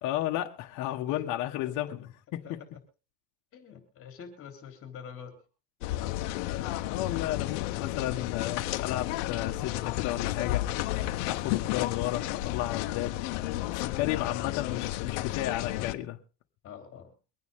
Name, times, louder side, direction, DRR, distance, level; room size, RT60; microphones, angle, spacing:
voice 1, 0.0-2.6 6.9-10.7 11.2-13.2 13.7-16.2, left 14 dB, 55° left, 1.6 m, -33 dB
voice 2, 3.5-5.4 14.0-14.2 16.6-17.1, left 7 dB, 35° left, 3.6 m, -45 dB
sound 1, 5.8-15.9, left 15 dB, 70° left, 1.2 m, -32 dB
24.0 x 9.5 x 3.7 m
cardioid pair, 155°, 36 cm